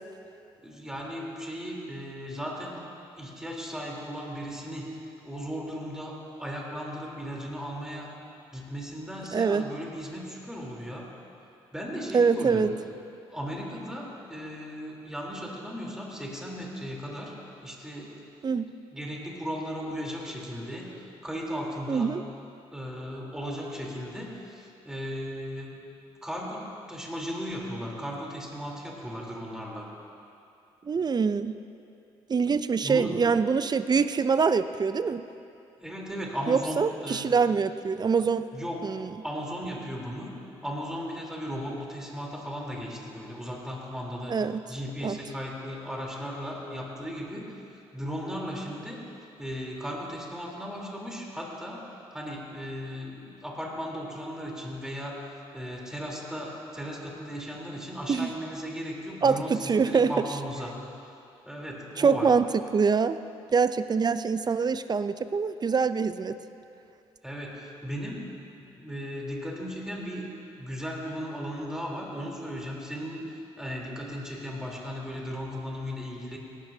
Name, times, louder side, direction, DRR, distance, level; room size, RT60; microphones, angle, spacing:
voice 1, 0.6-2.8 3.1-4.9 5.2-8.1 8.5-11.1 11.7-12.6 13.3-17.3 17.6-18.1 18.9-22.1 22.7-25.7 26.2-29.9 32.8-33.1 35.8-37.3 38.5-38.8 39.2-40.3 40.6-44.4 44.7-49.0 49.4-60.7 61.4-62.3 67.2-70.2 70.6-76.4, equal, 5° right, -3 dB, 3.6 m, -36 dB
voice 2, 9.3-9.7 12.1-12.7 18.4-18.7 21.9-22.2 30.8-31.6 32.3-35.2 36.5-38.5 38.8-39.1 44.3-44.6 45.0-45.2 58.1-58.3 59.2-60.1 62.0-62.5 62.7-63.2 63.5-66.4, right 5 dB, 35° right, 13 dB, 0.5 m, -24 dB
18.0 x 13.5 x 2.8 m, 2.7 s
supercardioid pair, 60°, 12 cm